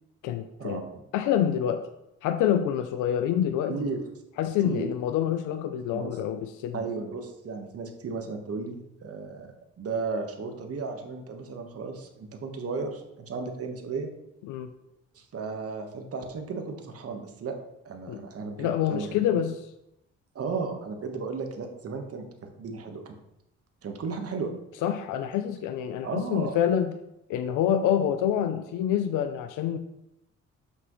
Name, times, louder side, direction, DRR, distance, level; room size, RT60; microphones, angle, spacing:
voice 1, 0.2-0.8 1.1-1.8 2.2-3.8 4.4-6.8 14.4-14.7 18.1-18.2 18.6-19.6 24.8-26.9 27.3-29.8, left 9 dB, 90° left, 8 dB, 0.5 m, -27 dB
voice 2, 3.7-4.0 4.6-4.9 5.9-6.1 6.7-14.1 15.1-17.6 17.8-19.4 20.3-23.2 23.8-24.5 26.0-26.6, right 4 dB, 50° right, 5 dB, 1.3 m, -34 dB
7.9 x 6.1 x 3.1 m, 0.87 s
cardioid pair, 90°, 30 cm